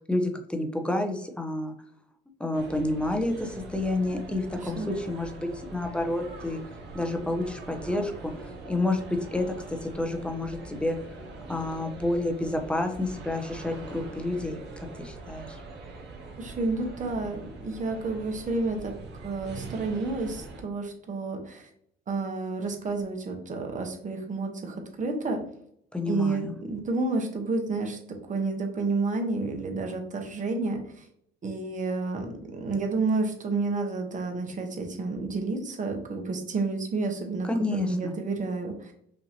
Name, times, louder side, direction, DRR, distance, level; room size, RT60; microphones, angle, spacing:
voice 1, 0.0-1.7 2.4-6.6 6.9-11.0 11.5-14.6 15.0-15.6 25.9-26.5 37.4-38.1, left 2 dB, 5° left, 5 dB, 0.8 m, -29 dB
sound 1, 2.5-20.6, right 3 dB, 55° right, 1.3 m, -43 dB
voice 2, 16.4-18.9 19.2-21.7 22.1-25.4 26.1-28.0 28.3-31.0 31.4-37.5 37.9-38.9, right 3 dB, 35° right, 4 dB, 1.1 m, -30 dB
5.4 x 2.7 x 2.9 m, 0.68 s
supercardioid pair, 80°, 21 cm